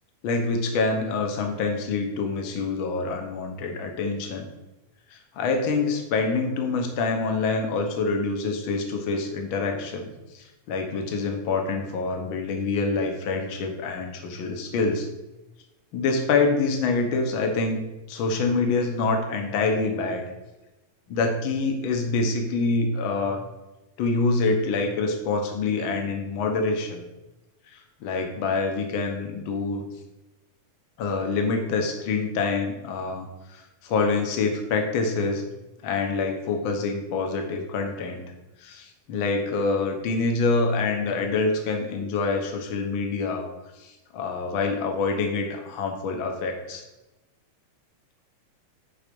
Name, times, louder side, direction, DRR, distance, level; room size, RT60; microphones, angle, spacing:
voice 1, 0.2-4.5 5.1-15.1 15.9-17.8 18.1-20.2 21.1-23.4 24.0-27.0 27.7-29.8 31.0-35.4 35.8-38.2 38.6-43.5 43.8-46.8, left 3 dB, 60° left, 3 dB, 1.4 m, -26 dB
9.9 x 4.0 x 5.3 m, 1.0 s
omnidirectional pair, 3.7 m